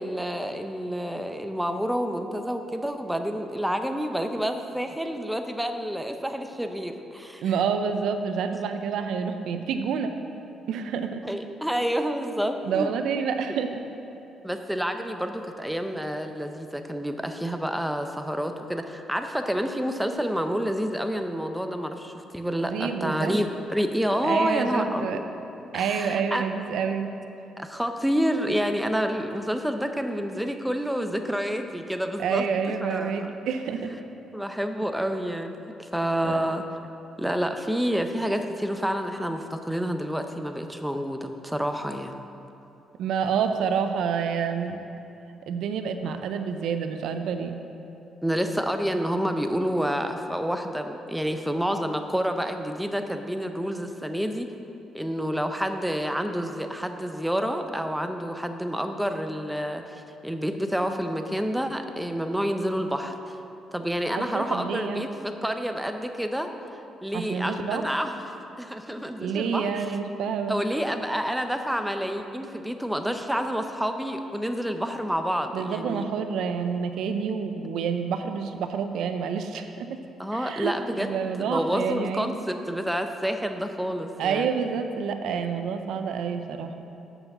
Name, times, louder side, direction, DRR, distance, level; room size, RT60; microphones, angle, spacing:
voice 1, 0.0-7.4 11.2-12.9 14.4-25.2 25.7-26.4 27.6-32.5 32.8-33.3 34.3-36.6 37.2-42.1 48.2-54.5 54.9-63.4 63.7-66.5 67.0-68.2 68.6-69.8 70.5-76.0 80.2-81.1 81.4-84.5, equal, 5° right, 6 dB, 0.6 m, -28 dB
voice 2, 7.4-10.1 10.7-11.2 12.6-13.8 22.7-23.3 24.2-25.2 25.7-27.1 32.2-33.9 36.2-36.4 43.0-44.8 45.5-47.6 64.2-65.1 67.1-67.8 69.2-70.6 75.5-80.0 80.3-82.5 84.2-86.7, right 6 dB, 80° right, 7 dB, 0.5 m, -28 dB
7.0 x 5.7 x 6.7 m, 2.8 s
cardioid pair, 90°, 0 cm